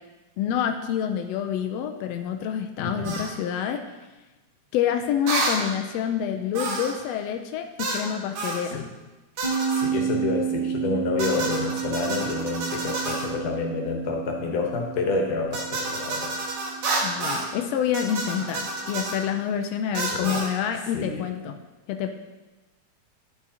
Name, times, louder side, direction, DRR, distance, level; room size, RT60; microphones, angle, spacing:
voice 1, 0.4-3.8 4.7-8.8 17.0-21.6 21.9-22.1, left 9 dB, 80° left, 5 dB, 1.5 m, -27 dB
voice 2, 2.8-3.3 8.7-8.9 9.7-16.3 20.0-20.4 20.9-21.3, left 4 dB, 65° left, 1 dB, 2.2 m, -29 dB
sound 1, 3.0-3.3 5.3-5.6 6.5-7.0 7.8-8.1 8.4-8.6 9.4-9.9 11.2-13.3 15.5-17.5 17.9-19.2 19.9-20.5, right 2 dB, 70° right, 2.5 m, -29 dB
sound 2, 9.4-18.9, right 7 dB, 35° left, 0.9 m, -32 dB
11.5 x 7.3 x 2.8 m, 1.2 s
omnidirectional pair, 3.4 m